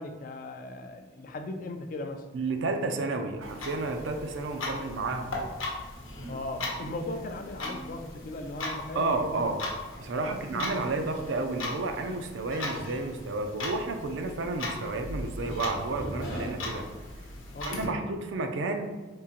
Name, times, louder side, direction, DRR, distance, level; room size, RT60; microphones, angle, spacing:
voice 1, 0.0-2.3 6.3-9.5 10.1-10.8 17.5-17.9, left 2 dB, 45° left, 5 dB, 0.3 m, -38 dB
voice 2, 2.3-5.4 8.9-9.6 10.0-16.9 17.6-18.9, right 3 dB, 70° right, 6 dB, 0.4 m, -31 dB
Clock, 3.4-17.9, left 2 dB, 90° left, 0.8 m, -38 dB
3.6 x 2.9 x 2.8 m, 1.3 s
head